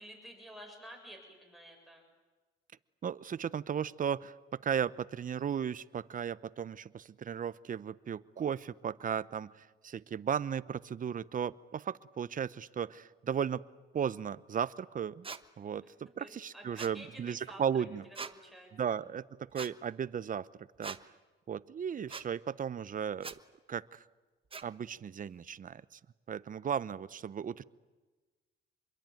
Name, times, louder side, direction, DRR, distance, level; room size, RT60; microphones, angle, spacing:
voice 1, 0.0-2.0 15.8-15.9 16.2-17.6 18.3-19.0, right 1 dB, ahead, 3 dB, 6.9 m, -51 dB
voice 2, 3.0-4.4 4.6-13.6 13.9-15.3 15.6-18.0 18.7-21.1 21.5-23.4 23.7-24.0 24.6-26.0 26.3-27.6, right 8 dB, 45° right, 17 dB, 0.8 m, -36 dB
sound 1, 15.2-15.4 16.8-17.0 18.1-18.3 19.5-19.7 20.8-21.0 22.1-22.3 23.2-23.4 24.5-24.6, right 5 dB, 25° right, 1.2 m, -42 dB
26.0 x 22.5 x 9.2 m, 1.3 s
cardioid pair, 90°, 20 cm